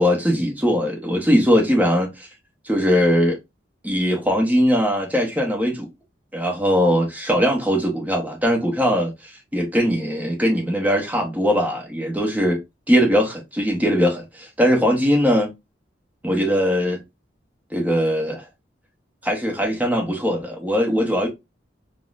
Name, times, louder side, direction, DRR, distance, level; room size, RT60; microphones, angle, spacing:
voice 1, 0.0-2.3 2.7-3.4 3.8-5.9 6.3-9.1 9.5-12.6 12.9-15.5 16.2-17.0 17.7-18.4 19.2-21.3, equal, 10° right, 0.8 m, -20 dB
3.6 x 2.1 x 2.3 m
head